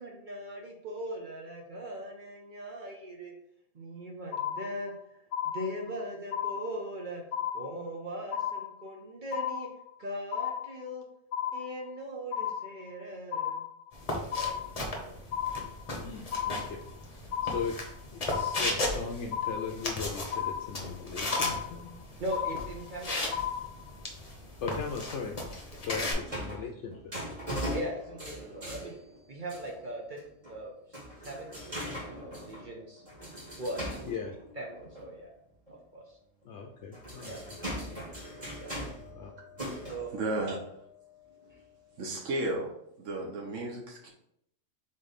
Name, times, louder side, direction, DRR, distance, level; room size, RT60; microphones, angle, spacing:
voice 1, 0.0-3.3 3.7-4.9 5.4-7.2 7.5-9.7 10.0-11.0 11.5-13.6 14.1-15.1 22.2-23.2 27.7-29.0 29.3-30.2 30.5-30.7 31.2-33.0 33.6-34.2 34.6-35.3 35.9-36.2 37.2-37.4 38.6-38.7 39.9-40.1, right 1 dB, 45° right, 0 dB, 0.8 m, -40 dB
sound 1, 4.3-5.0 5.3-6.0 6.3-7.0 7.3-8.0 8.3-9.0 9.3-10.0 10.3-11.0 11.3-12.0 12.3-13.0 13.3-14.0 14.3-15.0 15.3-16.0 16.3-17.0 17.3-18.0 18.3-19.0 19.3-20.0 20.3-21.0 21.3-22.0 22.3-23.0 23.3-24.0, left 9 dB, 90° left, 1.1 m, -34 dB
sound 2, 13.9-26.1, left 1 dB, 35° left, 0.8 m, -36 dB
voice 2, 16.0-21.9 24.6-27.2 34.1-34.4 36.4-37.3 37.7-38.0 39.1-39.3, left 5 dB, 70° left, 2 dB, 0.8 m, -39 dB
sound 3, 25.6-29.9 30.2-30.6 30.9-35.1 35.7-35.8 36.7-41.6 42.2-42.3, equal, 25° right, 1.6 m, -40 dB
voice 3, 40.1-40.6 42.0-42.7 43.0-44.1, right 2 dB, 75° right, -1 dB, 1.2 m, -33 dB
4.0 x 3.3 x 4.0 m, 0.74 s
omnidirectional pair, 1.3 m